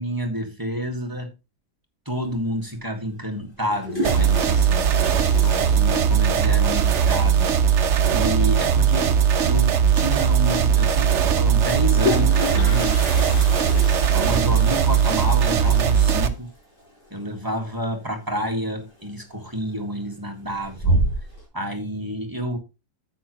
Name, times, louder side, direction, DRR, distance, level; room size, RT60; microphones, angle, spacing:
voice 1, 0.0-1.3 2.1-7.5 8.1-9.1 9.5-13.0 14.1-16.5 17.1-21.0 21.5-22.6, equal, 15° right, 2 dB, 1.8 m, -29 dB
Toilet flush, 2.3-2.4 3.6-6.4 6.7-6.8 7.1-7.2 7.4-7.8 9.5-9.6 10.0-10.1 11.6-18.3 18.6-19.1 19.5-20.0 20.4-21.4, equal, 30° left, 5.1 m, -29 dB
sound 1, 4.0-16.3, right 8 dB, 50° right, 1.0 m, -19 dB
9.9 x 8.2 x 3.0 m, 0.26 s
omnidirectional pair, 1.7 m